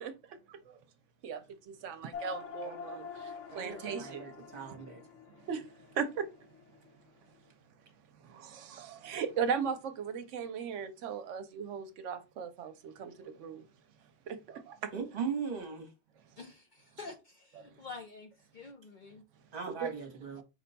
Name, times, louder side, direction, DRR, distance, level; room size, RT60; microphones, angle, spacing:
voice 1, 0.0-0.8 1.2-4.3 5.4-5.7 5.9-6.3 8.2-13.7 14.3-14.9 17.6-17.7 19.8-19.9, right 6 dB, 80° right, 0.9 m, -38 dB
sound 1, 2.1-6.9, left 6 dB, 75° left, 0.9 m, -46 dB
voice 2, 3.5-5.0 14.9-15.9 19.5-20.4, right 6 dB, 50° right, 1.1 m, -39 dB
voice 3, 16.4-19.2, left 4 dB, 55° left, 0.5 m, -48 dB
4.7 x 2.2 x 3.9 m
omnidirectional pair, 1.3 m